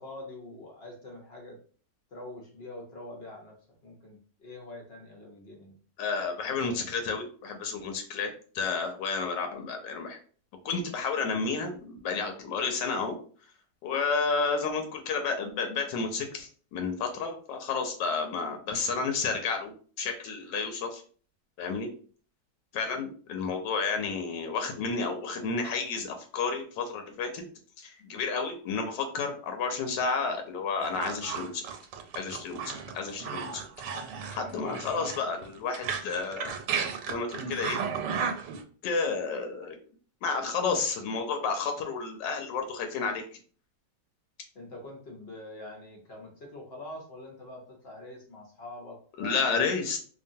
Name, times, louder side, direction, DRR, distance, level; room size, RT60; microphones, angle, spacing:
voice 1, 0.0-1.6 2.1-5.8 44.5-49.9, left 1 dB, 60° left, 0 dB, 0.6 m, -45 dB
voice 2, 6.0-8.3 8.5-10.2 10.6-13.2 13.8-21.0 21.6-21.9 22.7-27.4 27.8-31.6 32.1-33.6 34.3-36.5 37.1-37.8 38.8-39.8 40.2-43.2 49.2-50.0, left 4 dB, 85° left, 5 dB, 1.2 m, -31 dB
sound 1, 30.8-38.6, right 6 dB, 90° right, 1.2 m, -34 dB
2.9 x 2.3 x 2.6 m, 0.43 s
omnidirectional pair, 1.9 m